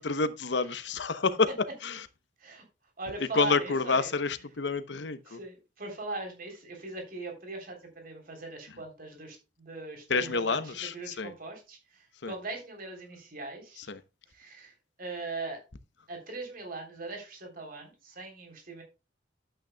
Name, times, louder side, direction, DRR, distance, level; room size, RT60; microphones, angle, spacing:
voice 1, 0.0-1.5 1.8-2.1 3.3-5.4 10.1-11.3 12.2-12.3 13.8-14.0, left 4 dB, 70° left, 0.8 m, -29 dB
voice 2, 3.0-4.1 5.2-13.9 14.3-15.6 16.1-18.8, right 3 dB, 50° right, 3.4 m, -40 dB
11.5 x 8.9 x 2.2 m
head